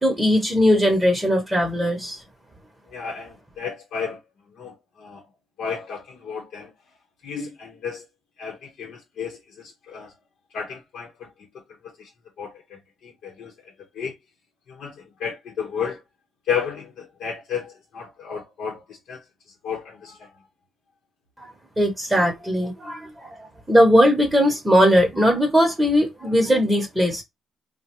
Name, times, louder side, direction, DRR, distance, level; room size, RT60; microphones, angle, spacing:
voice 1, 0.0-2.2 21.4-21.5 21.8-27.2, equal, 10° right, 0.9 m, -19 dB
voice 2, 2.9-4.2 4.5-5.3 5.6-6.7 7.2-8.1 8.4-10.1 10.5-12.1 12.4-14.1 14.7-16.0 16.5-19.2 19.6-20.3, left 6 dB, 75° left, 0.9 m, -33 dB
3.8 x 2.1 x 2.9 m
cardioid pair, 90°, 0 cm